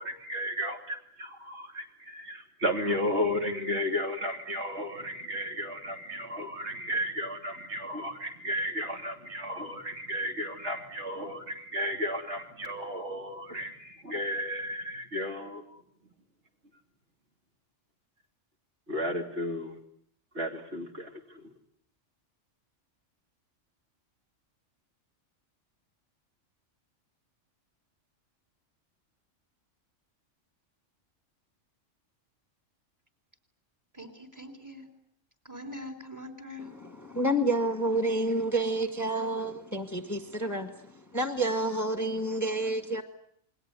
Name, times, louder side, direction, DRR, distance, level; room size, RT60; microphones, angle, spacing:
voice 1, 0.0-15.6 18.9-19.7 20.3-21.1, equal, 60° right, 3.4 m, -33 dB
voice 2, 33.9-34.9 35.4-36.7, left 1 dB, 15° right, 3.8 m, -43 dB
voice 3, 36.6-43.0, right 1 dB, 15° left, 1.6 m, -29 dB
28.5 x 21.5 x 9.6 m
omnidirectional pair, 1.3 m